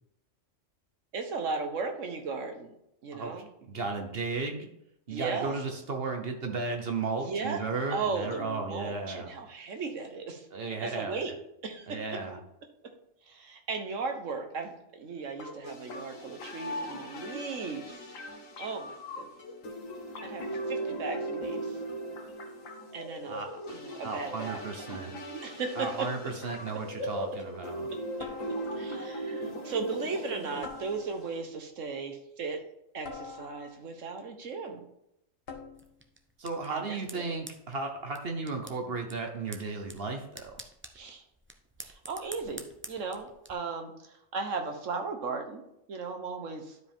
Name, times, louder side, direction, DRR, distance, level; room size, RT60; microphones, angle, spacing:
voice 1, 1.1-2.7 3.0-3.5 5.1-5.5 7.2-7.6 7.9-10.5 10.8-11.3 11.6-12.2 13.3-18.1 18.6-19.3 20.2-21.8 22.9-23.4 23.7-24.6 25.4-26.1 28.7-32.6 32.9-34.8 36.7-37.3 40.9-41.2 41.8-45.6 45.9-46.8, right 4 dB, 70° right, 5 dB, 1.5 m, -36 dB
voice 2, 3.1-4.7 5.1-9.3 10.5-11.2 11.9-12.4 23.3-25.1 25.8-27.9 36.4-40.5, right 3 dB, 50° right, 4 dB, 1.2 m, -35 dB
sound 1, 15.4-31.4, right 1 dB, 85° left, 1.4 m, -39 dB
sound 2, 28.2-29.0 30.6-31.5 33.0-34.0 35.5-36.1, left 5 dB, 50° left, 1.1 m, -46 dB
sound 3, 35.8-43.5, right 2 dB, 15° right, 0.4 m, -49 dB
11.5 x 5.0 x 3.6 m, 0.79 s
omnidirectional pair, 1.3 m